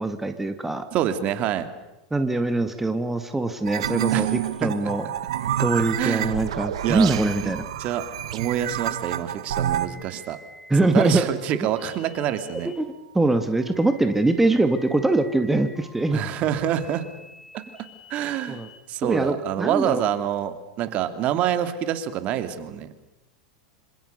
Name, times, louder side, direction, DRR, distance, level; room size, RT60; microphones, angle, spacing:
voice 1, 0.0-0.9 2.1-5.1 5.6-7.6 10.7-11.3 12.6-12.9 13.1-16.2 18.5-18.7 19.0-20.0, right 2 dB, 10° right, 8 dB, 2.0 m, -23 dB
voice 2, 0.9-1.7 4.1-4.3 4.6-4.9 5.4-5.5 6.0-6.3 6.8-7.1 7.4-7.5 7.8-8.0 8.3-10.4 10.9-12.7 16.1-17.0 17.5-17.6 18.1-18.6 18.9-22.9, right 10 dB, 45° right, 10 dB, 2.7 m, -26 dB
sound 1, 3.7-9.9, right 11 dB, 70° right, 1.5 m, -28 dB
sound 2, 9.8-18.8, left 2 dB, 15° left, 5.9 m, -49 dB
27.0 x 26.5 x 6.8 m, 0.99 s
hypercardioid pair, 95°, 3 cm